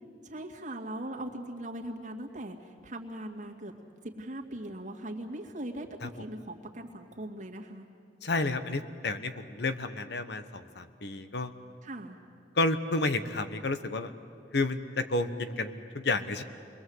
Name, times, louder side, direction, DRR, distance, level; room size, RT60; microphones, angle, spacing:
voice 1, 0.2-3.7 4.0-7.9 11.8-12.2, right 1 dB, 45° right, 1 dB, 2.3 m, -40 dB
voice 2, 8.2-11.5 12.5-14.1 14.5-16.4, left 2 dB, 70° left, 10 dB, 1.1 m, -31 dB
28.5 x 22.0 x 8.0 m, 2.3 s
head